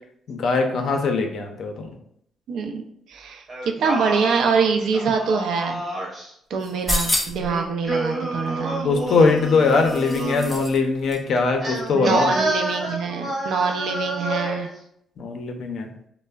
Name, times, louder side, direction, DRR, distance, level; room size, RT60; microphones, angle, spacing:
voice 1, 0.3-1.9 8.8-12.4 15.2-15.9, left 4 dB, 65° left, 4 dB, 0.5 m, -21 dB
voice 2, 2.5-2.8 3.1-5.8 6.5-8.9 11.9-14.7, right 5 dB, 75° right, 4 dB, 0.4 m, -24 dB
Singing, 3.5-6.3 7.4-10.6 11.6-14.7, right 1 dB, 40° right, 0.8 m, -29 dB
sound 1, 6.6-7.5 9.0-10.8 11.1-11.2, left 1 dB, 15° left, 0.5 m, -28 dB
3.3 x 2.0 x 2.2 m, 0.72 s
cardioid pair, 90°, 0 cm